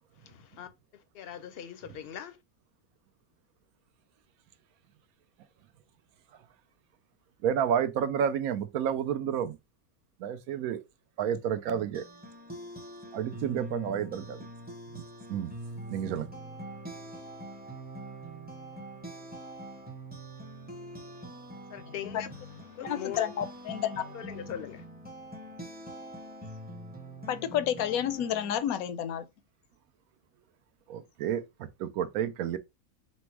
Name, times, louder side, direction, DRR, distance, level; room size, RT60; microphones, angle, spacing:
voice 1, 0.2-2.4 21.7-22.3 22.8-23.2 24.1-24.8, left 9 dB, 60° left, 0.6 m, -41 dB
voice 2, 7.4-9.6 10.2-10.8 11.2-12.0 13.1-14.4 14.9-15.0 15.3-15.5 15.9-16.3 30.9-32.6, right 8 dB, 75° right, 1.0 m, -30 dB
sound 1, 11.7-28.6, right 1 dB, 10° right, 0.6 m, -44 dB
voice 3, 22.8-24.1 27.3-29.2, left 10 dB, 75° left, 1.0 m, -30 dB
4.3 x 2.0 x 4.5 m
omnidirectional pair, 1.6 m